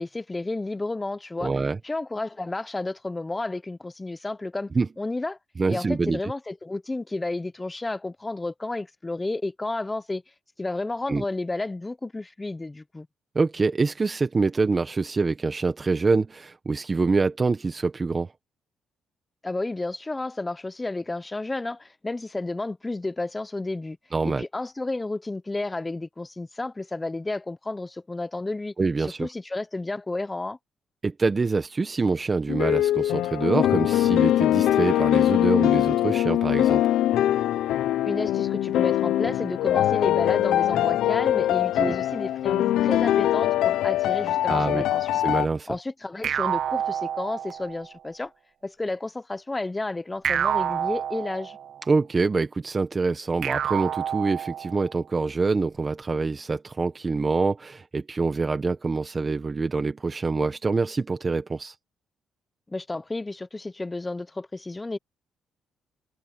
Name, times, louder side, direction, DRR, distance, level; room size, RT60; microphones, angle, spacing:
voice 1, 0.0-1.5 1.8-4.7 5.0-5.4 5.7-10.2 10.6-13.1 19.4-24.0 24.2-28.7 29.2-30.6 38.0-45.1 45.7-48.3 48.6-51.6 62.7-65.0, left 2 dB, 20° left, 0.9 m, -31 dB
voice 2, 1.4-1.8 4.7-4.9 5.6-6.3 11.1-11.2 13.3-18.3 24.1-24.4 28.8-29.3 31.0-36.8 41.8-41.9 44.5-44.9 45.1-45.8 51.9-61.7, right 4 dB, 30° right, 1.3 m, -25 dB
sound 1, 32.5-45.5, left 13 dB, 85° left, 0.6 m, -22 dB
sound 2, 46.2-47.9 50.2-51.8 53.4-54.9, right 9 dB, 65° right, 0.7 m, -28 dB
cardioid pair, 90°, 0 cm